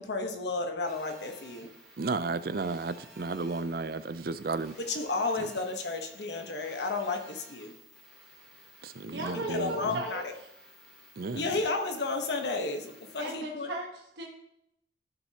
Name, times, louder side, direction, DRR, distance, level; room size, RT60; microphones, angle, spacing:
voice 1, 0.0-1.7 4.8-7.7 9.5-10.2 11.3-13.7, left 3 dB, 75° left, 5 dB, 1.1 m, -32 dB
Telephone, 0.9-13.3, equal, 5° left, 2.7 m, -54 dB
voice 2, 2.0-4.8 5.4-5.5 8.8-10.0 11.2-11.6, right 3 dB, 55° right, 13 dB, 0.5 m, -33 dB
voice 3, 9.1-10.3 13.2-14.3, right 2 dB, 75° right, -1 dB, 1.2 m, -36 dB
13.0 x 6.1 x 2.9 m, 0.79 s
head